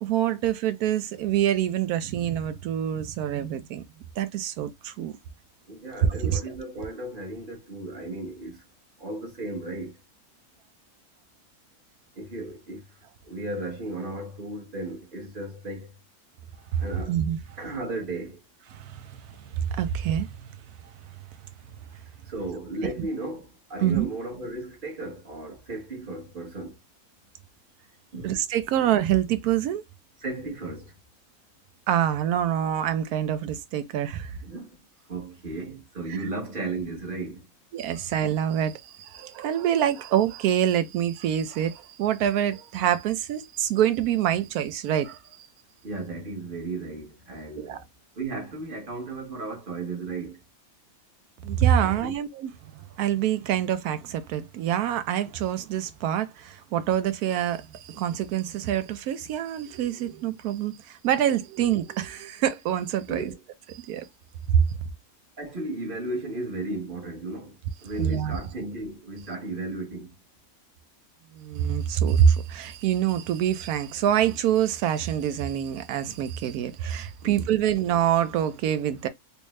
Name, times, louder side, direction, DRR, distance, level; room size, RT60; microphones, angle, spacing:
voice 1, 0.0-3.8 4.2-5.2 6.2-6.4 16.7-17.4 18.7-19.2 19.5-20.5 22.8-22.9 23.8-24.1 28.2-29.8 31.9-34.3 36.1-36.2 37.7-45.5 47.6-47.8 51.4-52.5 53.0-63.3 63.7-64.1 64.5-64.6 68.0-68.4 71.4-79.1, right 10 dB, 80° right, 1.1 m, -26 dB
voice 2, 5.7-8.6 9.0-10.0 12.1-12.9 13.2-15.9 16.8-17.2 17.6-18.4 22.2-26.8 28.1-28.4 30.2-30.9 34.4-34.8 35.1-37.5 45.8-47.9 48.1-50.4 51.8-52.2 63.1-63.4 65.4-70.2 77.2-77.5, right 2 dB, 35° right, 1.4 m, -35 dB
3.3 x 2.6 x 3.1 m
omnidirectional pair, 1.6 m